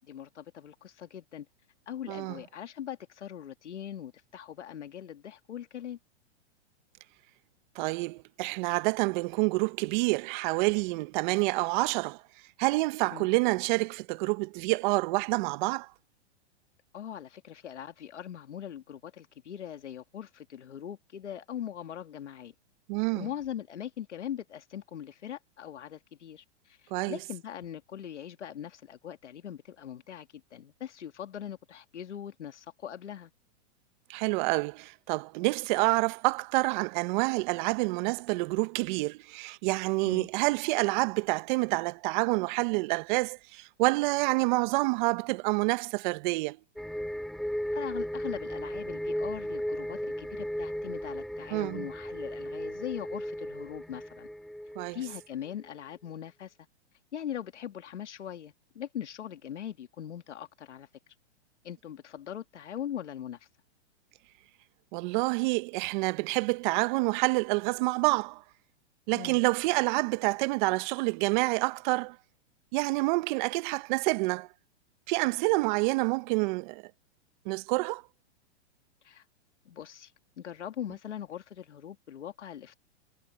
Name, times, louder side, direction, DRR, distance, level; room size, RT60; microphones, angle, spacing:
voice 1, 0.1-1.5 1.9-6.0 13.1-13.3 16.9-22.5 23.1-33.3 40.1-40.3 47.7-54.3 54.9-56.5 57.1-60.9 61.6-63.5 69.1-69.4 79.0-79.2 79.7-80.1 80.4-82.8, left 10 dB, 85° left, 2.1 m, -41 dB
voice 2, 2.1-2.4 7.7-12.2 12.6-15.9 22.9-23.3 26.9-27.2 34.1-46.6 51.5-51.9 54.8-55.0 64.9-68.4 69.1-72.2 72.7-74.5 75.1-76.8 77.4-78.0, right 25 dB, 45° right, 1.2 m, -28 dB
sound 1, 46.8-55.2 55.5-55.6, equal, ahead, 3.6 m, -36 dB
hypercardioid pair, 130°, 34 cm